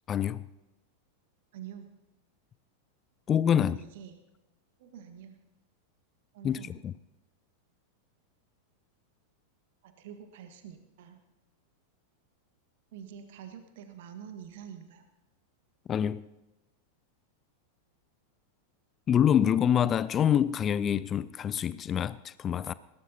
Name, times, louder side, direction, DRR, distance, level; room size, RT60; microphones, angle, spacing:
voice 1, 0.1-0.5 3.3-3.8 6.4-6.9 15.9-16.3 19.1-22.7, left 9 dB, 25° left, 0.4 m, -26 dB
voice 2, 1.5-1.9 3.5-4.2 4.8-5.4 6.3-6.8 9.8-11.2 12.9-15.0, right 8 dB, 55° right, 1.5 m, -46 dB
21.0 x 17.0 x 2.9 m
figure-of-eight pair, 90°, 0 cm